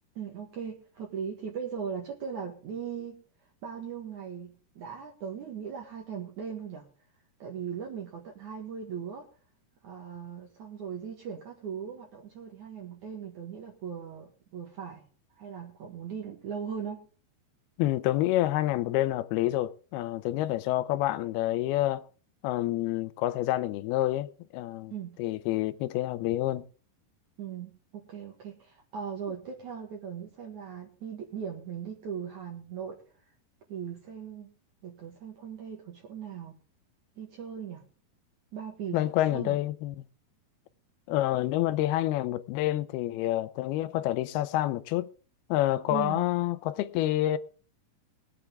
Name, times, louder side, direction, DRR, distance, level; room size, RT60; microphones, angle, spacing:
voice 1, 0.2-3.2 3.6-6.9 7.4-9.3 9.8-15.1 15.4-17.0 24.9-25.2 27.4-33.0 33.7-34.5 34.8-36.6 37.2-37.9 38.5-39.6 45.9-46.3, right 7 dB, 55° right, 2.8 m, -39 dB
voice 2, 17.8-22.1 22.4-24.9 25.2-26.6 38.9-39.9 41.1-45.1 45.5-47.4, left 15 dB, 85° left, 2.6 m, -28 dB
21.5 x 8.4 x 3.5 m
omnidirectional pair, 4.5 m